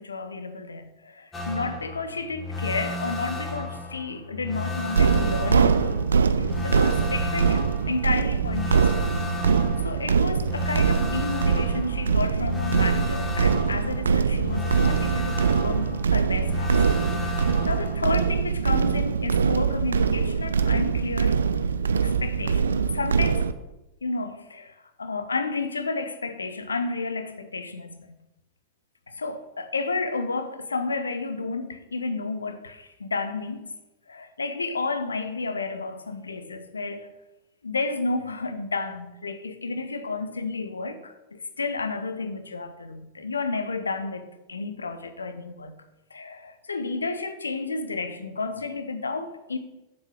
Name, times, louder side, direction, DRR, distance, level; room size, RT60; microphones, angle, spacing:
voice 1, 0.0-6.0 6.4-9.1 9.8-16.7 17.2-21.4 21.9-23.5 24.0-28.1 29.1-33.7 34.1-37.1 37.6-45.7 46.1-49.6, left 3 dB, 75° left, 0.8 m, -31 dB
sound 1, 1.3-18.0, left 2 dB, 20° left, 1.9 m, -33 dB
sound 2, 5.0-23.5, right 6 dB, 70° right, 0.4 m, -23 dB
7.4 x 6.3 x 7.1 m
figure-of-eight pair, 90°, 0 cm